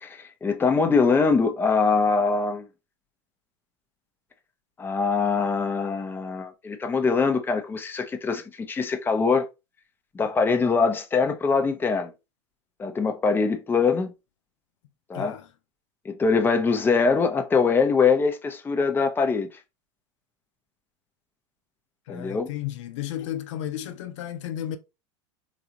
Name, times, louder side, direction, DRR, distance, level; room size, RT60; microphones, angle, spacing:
voice 1, 0.0-2.7 4.8-9.5 10.1-12.1 12.8-14.1 15.1-15.3 16.0-19.5 22.1-22.5, left 4 dB, 15° left, 0.6 m, -23 dB
voice 2, 15.1-15.5 22.1-24.8, left 11 dB, 75° left, 0.6 m, -33 dB
4.0 x 2.4 x 2.8 m
hypercardioid pair, 105°, 16 cm